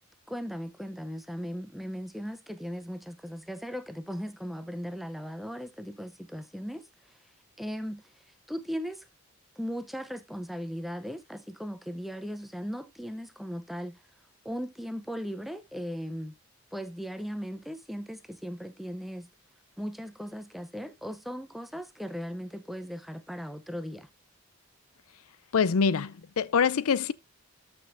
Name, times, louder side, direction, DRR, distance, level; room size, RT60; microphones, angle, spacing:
voice 1, 0.3-7.2 7.6-8.0 8.5-9.1 9.6-14.0 14.4-16.4 16.7-19.3 19.8-24.1, equal, ahead, 0.6 m, -37 dB
voice 2, 25.5-27.1, left 6 dB, 75° left, 0.5 m, -25 dB
13.5 x 6.1 x 2.6 m
head